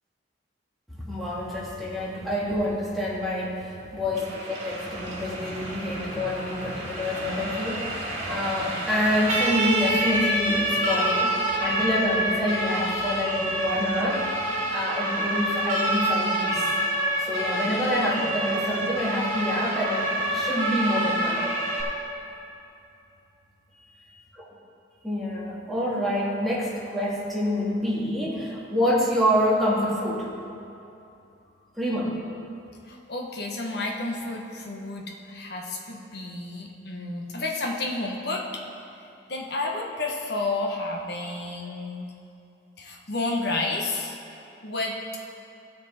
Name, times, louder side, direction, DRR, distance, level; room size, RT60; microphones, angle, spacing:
voice 1, 0.9-14.3 14.7-16.7 17.2-21.5 25.0-30.3 31.8-32.2, left 1 dB, ahead, -7 dB, 2.0 m, -27 dB
Siren, 4.1-21.8, right 1 dB, 40° right, 2.7 m, -27 dB
voice 2, 32.9-38.6 39.3-42.1 42.8-44.2 44.6-45.0, left 2 dB, 60° left, 0 dB, 1.3 m, -31 dB
16.0 x 6.6 x 4.3 m, 2.7 s
head